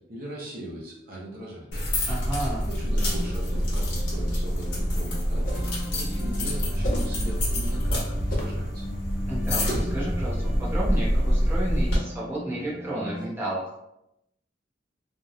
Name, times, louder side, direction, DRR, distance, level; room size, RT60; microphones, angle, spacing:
voice 1, 0.0-1.8 2.7-5.5 5.9-8.9, right 1 dB, 55° right, -4 dB, 0.7 m, -39 dB
sound 1, 1.7-12.0, equal, 75° left, 1.0 m, -26 dB
voice 2, 2.1-2.7 9.3-13.7, right 1 dB, 10° right, -8 dB, 0.6 m, -32 dB
sound 2, 2.9-13.3, left 1 dB, 75° right, 1.0 m, -39 dB
sound 3, 5.3-5.8 6.8-7.2 8.2-8.6 9.7-10.0, equal, 50° left, 0.6 m, -30 dB
2.7 x 2.1 x 2.4 m, 0.83 s
head